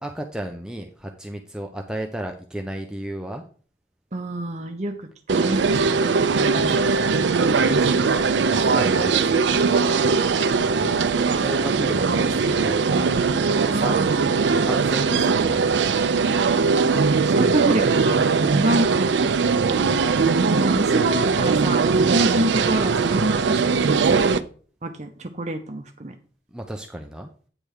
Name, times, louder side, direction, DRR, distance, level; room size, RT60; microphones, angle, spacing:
voice 1, 0.0-3.4 6.7-6.8 7.8-8.0 8.5-9.7 10.8-11.0 11.3-13.1 13.7-14.0 14.6-15.9 19.6-20.4 22.0-22.3 26.5-27.3, right 1 dB, 5° right, 3 dB, 0.6 m, -34 dB
voice 2, 4.1-5.0 5.3-6.1 6.5-7.1 11.3-11.5 13.7-14.2 17.3-18.2 18.5-19.1 20.5-24.4 24.8-26.1, right 1 dB, 40° right, 5 dB, 0.7 m, -27 dB
sound 1, 5.3-24.4, right 4 dB, 80° right, 0.5 m, -20 dB
8.9 x 3.5 x 6.4 m, 0.42 s
head